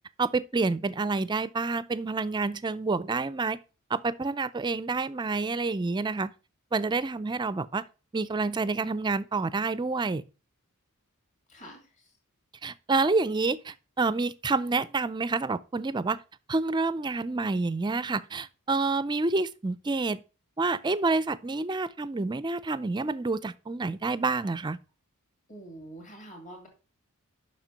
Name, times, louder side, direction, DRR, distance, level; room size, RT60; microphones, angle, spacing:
voice 1, 0.2-3.6 3.9-6.3 6.7-7.8 8.1-10.2 12.6-16.2 16.5-20.2 20.6-24.8, right 3 dB, 20° right, 0.4 m, -28 dB
voice 2, 11.5-12.1 25.5-26.7, right 1 dB, 35° left, 2.5 m, -46 dB
7.3 x 5.9 x 5.1 m
head